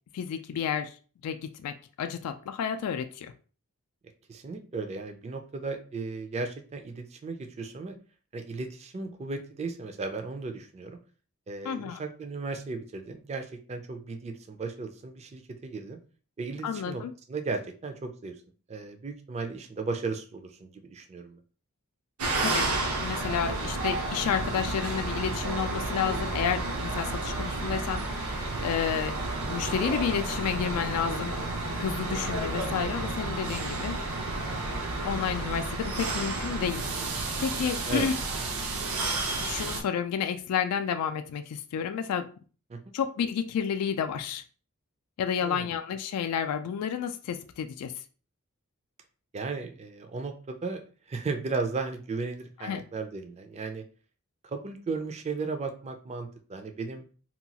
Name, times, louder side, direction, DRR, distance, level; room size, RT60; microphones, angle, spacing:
voice 1, 0.1-1.0 1.2-3.3 11.6-12.0 16.6-17.1 22.4-29.2 29.5-31.4 31.8-34.0 35.0-38.1 39.4-42.3 42.9-44.4 45.2-47.9 52.6-52.8, left 7 dB, 90° left, 8 dB, 0.3 m, -31 dB
voice 2, 4.3-7.9 8.3-11.0 11.5-16.0 16.4-17.0 17.3-18.4 18.7-21.4 37.8-38.1 42.7-42.8 45.4-45.7 49.3-53.8 54.4-57.0, right 3 dB, 30° right, 6 dB, 0.4 m, -35 dB
sound 1, 22.2-39.8, right 2 dB, 80° right, 0.6 m, -31 dB
2.9 x 2.3 x 2.7 m, 0.38 s
head